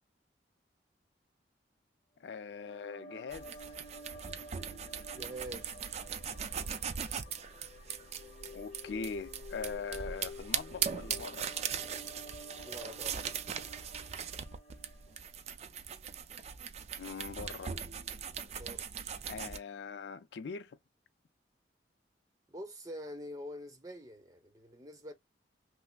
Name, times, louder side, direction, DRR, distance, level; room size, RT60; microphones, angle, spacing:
voice 1, 2.2-3.5 8.5-11.5 17.0-17.8 19.3-20.8, left 5 dB, 75° left, 0.4 m, -41 dB
sound 1, 2.3-15.6, left 2 dB, 40° left, 1.1 m, -51 dB
sound 2, 3.3-19.6, right 7 dB, 35° right, 0.4 m, -40 dB
voice 2, 5.1-5.7 12.6-13.3 18.5-18.9 22.5-25.1, equal, 20° right, 0.8 m, -45 dB
5.6 x 2.0 x 2.3 m
head